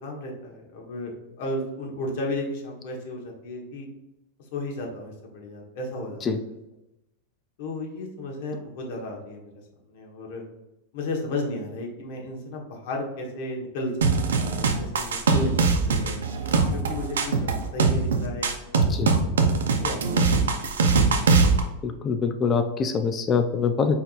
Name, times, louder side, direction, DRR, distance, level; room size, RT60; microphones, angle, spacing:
voice 1, 0.0-3.9 4.5-6.4 7.6-9.5 9.9-10.4 10.9-13.9 14.2-15.6 15.8-16.1 16.7-20.2, left 1 dB, 65° left, 0 dB, 1.2 m, -34 dB
sound 1, 14.0-21.6, right 4 dB, 90° right, 0.5 m, -21 dB
voice 2, 21.8-24.0, left 5 dB, 30° left, 7 dB, 0.4 m, -24 dB
4.2 x 3.9 x 2.4 m, 0.93 s
hypercardioid pair, 110°, 0 cm